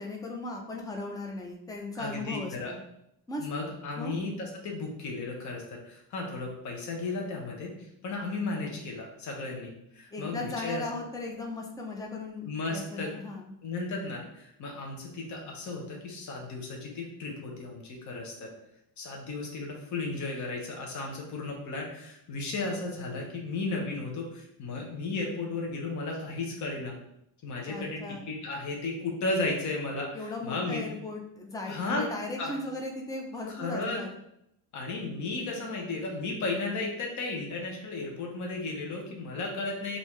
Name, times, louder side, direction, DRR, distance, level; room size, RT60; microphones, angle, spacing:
voice 1, 0.0-2.8 3.3-4.2 10.1-13.5 27.7-28.2 30.1-34.1, left 2 dB, 10° left, 1 dB, 0.4 m, -37 dB
voice 2, 1.9-2.8 3.4-7.7 8.0-10.9 12.4-13.1 13.6-18.5 19.0-27.0 27.4-30.8 31.7-32.0 32.4-32.6 33.5-34.0 34.7-40.0, left 3 dB, 40° left, 0 dB, 0.9 m, -34 dB
5.3 x 2.7 x 3.1 m, 0.77 s
cardioid pair, 155°, 44 cm